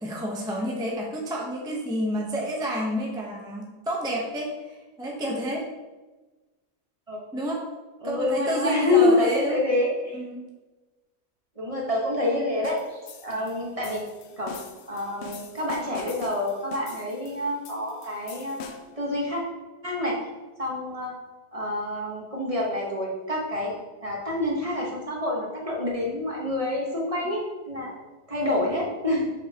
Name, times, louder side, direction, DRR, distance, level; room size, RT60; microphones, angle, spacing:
voice 1, 0.0-4.5 5.0-5.6 7.3-7.6 8.0-9.6 10.1-10.4, equal, 5° right, -2 dB, 0.5 m, -29 dB
voice 2, 8.0-10.2 11.6-12.8 13.2-14.0 14.4-14.6 14.9-18.6 19.0-19.4 19.8-20.2 20.6-21.2 21.5-23.7 24.0-27.9 28.3-29.3, left 2 dB, 25° right, -2 dB, 1.0 m, -27 dB
sound 1, 12.6-19.0, left 5 dB, 70° left, 0.6 m, -43 dB
6.6 x 6.3 x 2.9 m, 1.2 s
omnidirectional pair, 1.8 m